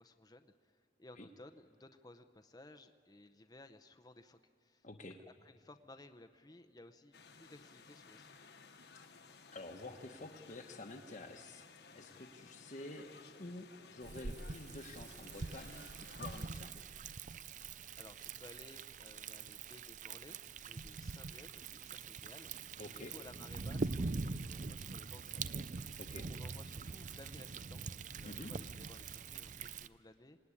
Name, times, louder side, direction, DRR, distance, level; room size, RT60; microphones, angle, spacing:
voice 1, 0.0-4.9 5.2-8.3 18.0-20.4 20.6-25.5 26.3-30.4, left 2 dB, 20° left, 8 dB, 0.8 m, -58 dB
voice 2, 4.8-5.2 8.9-9.0 9.5-11.7 11.9-13.1 13.4-16.8 22.8-23.1 26.0-26.3 28.2-28.5, left 2 dB, 40° left, 2 dB, 1.1 m, -49 dB
sound 1, 7.1-16.5, left 5 dB, 65° left, 1.3 m, -57 dB
Thunder, 14.0-29.9, right 4 dB, 45° right, 0.5 m, -44 dB
26.0 x 19.0 x 9.8 m, 2.3 s
head